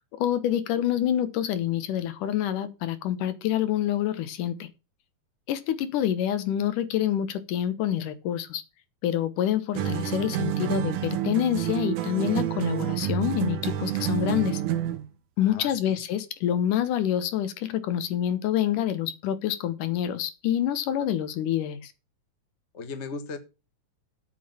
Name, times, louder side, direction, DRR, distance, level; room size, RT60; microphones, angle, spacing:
voice 1, 0.2-4.7 5.5-8.6 9.0-14.6 15.4-21.9, left 11 dB, 75° left, 2.6 m, -27 dB
sound 1, 9.8-15.1, right 11 dB, 70° right, 2.4 m, -29 dB
voice 2, 15.4-16.0 22.7-23.4, left 4 dB, 50° left, 0.8 m, -37 dB
8.7 x 6.3 x 7.2 m
omnidirectional pair, 3.8 m